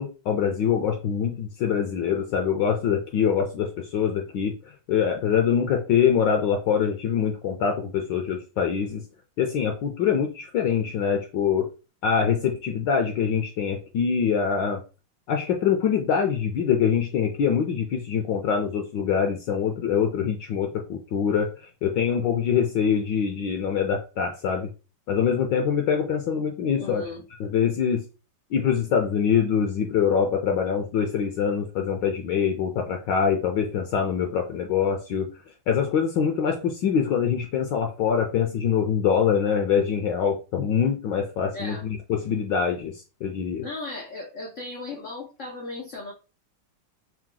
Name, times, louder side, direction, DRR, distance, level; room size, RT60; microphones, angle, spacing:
voice 1, 0.0-9.0 9.4-11.7 12.0-14.8 15.3-24.7 25.1-27.0 27.4-28.0 28.5-35.3 35.7-43.6, left 7 dB, 70° left, 4 dB, 1.2 m, -24 dB
voice 2, 26.8-27.2 41.5-41.8 43.6-46.1, left 2 dB, 85° left, -1 dB, 0.6 m, -36 dB
4.6 x 2.1 x 3.7 m, 0.32 s
omnidirectional pair, 2.2 m